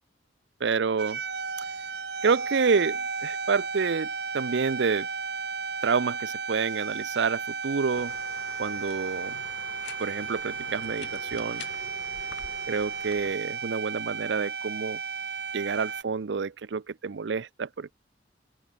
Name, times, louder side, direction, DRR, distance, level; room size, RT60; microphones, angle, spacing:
voice 1, 0.6-1.2 2.2-4.1 4.3-5.1 5.8-8.1 8.6-9.3 10.0-11.6 12.7-15.0 15.5-17.9, right 5 dB, 80° right, 0.5 m, -28 dB
sound 1, 1.0-16.0, right 5 dB, 65° right, 3.0 m, -34 dB
sound 2, 7.9-13.3, left 4 dB, 80° left, 2.1 m, -45 dB
open air
head